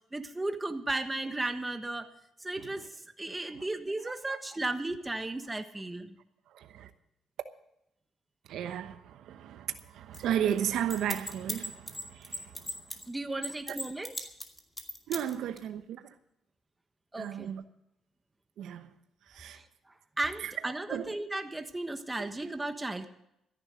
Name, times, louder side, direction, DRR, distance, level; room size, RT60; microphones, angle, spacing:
voice 1, 0.1-2.1 2.4-2.9 3.2-6.2 13.1-14.3 17.1-17.5 19.5-19.6 20.2-23.1, right 2 dB, 15° right, 1.3 m, -35 dB
voice 2, 6.5-6.9 8.5-12.7 13.7-13.8 15.1-16.1 17.2-17.6 18.6-18.9 19.3-19.6 20.4-20.5 20.9-21.1 22.2-22.3, right 10 dB, 80° right, 1.0 m, -34 dB
sound 1, 9.8-9.9 10.1-10.2 10.5-13.0 13.4-15.6, left 1 dB, 10° left, 2.4 m, -37 dB
14.0 x 10.5 x 6.4 m
cardioid pair, 90°, 0 cm